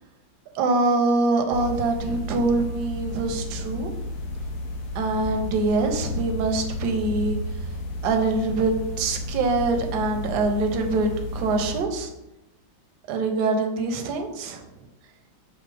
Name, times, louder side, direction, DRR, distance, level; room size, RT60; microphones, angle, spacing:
voice 1, 0.5-3.9 4.9-7.4 8.0-12.1 13.1-14.6, right 3 dB, 70° right, 4 dB, 1.0 m, -24 dB
sound 1, 1.5-11.8, left 2 dB, 80° left, 1.4 m, -32 dB
5.8 x 2.0 x 3.2 m, 0.91 s
omnidirectional pair, 2.2 m